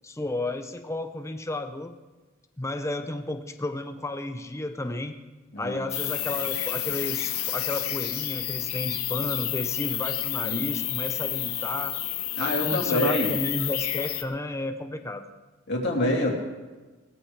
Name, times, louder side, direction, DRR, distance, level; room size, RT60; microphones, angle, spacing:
voice 1, 0.0-2.0 2.6-5.2 5.6-12.0 12.4-15.3, left 2 dB, 15° left, 7 dB, 0.7 m, -32 dB
sound 1, 5.9-14.2, left 13 dB, 85° left, 0.9 m, -30 dB
voice 2, 12.4-13.3 15.7-16.4, left 1 dB, 50° left, -1 dB, 2.8 m, -26 dB
19.5 x 14.0 x 3.3 m, 1.3 s
head